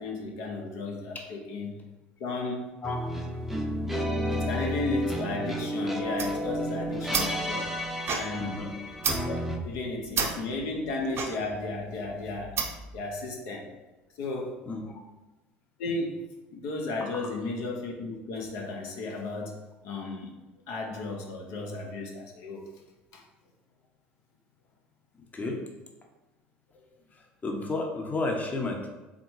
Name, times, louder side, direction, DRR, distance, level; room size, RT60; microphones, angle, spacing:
voice 1, 0.0-1.8 2.2-2.8 4.3-7.8 8.1-8.6 9.3-9.4 9.6-12.6 12.9-13.7 14.2-14.6 15.8-19.6 19.8-20.3 20.7-22.7 23.1-23.2, left 2 dB, 65° left, 0 dB, 0.7 m, -34 dB
sound 1, 2.8-9.6, equal, ahead, 0.6 m, -31 dB
sound 2, 6.0-13.0, right 5 dB, 45° right, 0.6 m, -34 dB
voice 2, 27.4-28.9, left 2 dB, 25° left, 2 dB, 0.8 m, -31 dB
3.7 x 3.5 x 3.1 m, 1.1 s
hypercardioid pair, 70°, 6 cm